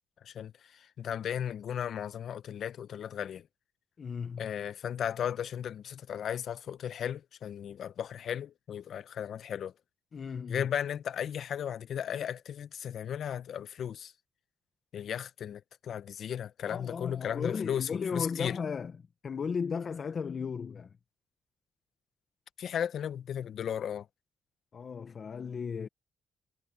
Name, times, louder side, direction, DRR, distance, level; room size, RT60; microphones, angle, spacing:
voice 1, 0.2-3.5 4.4-9.7 10.5-14.1 14.9-18.6 22.6-24.1, left 9 dB, 65° left, 0.9 m, -35 dB
voice 2, 4.0-4.5 10.1-10.7 16.6-19.0 19.2-20.9 24.7-25.9, left 6 dB, 45° left, 1.0 m, -35 dB
cardioid pair, 90°, 0 cm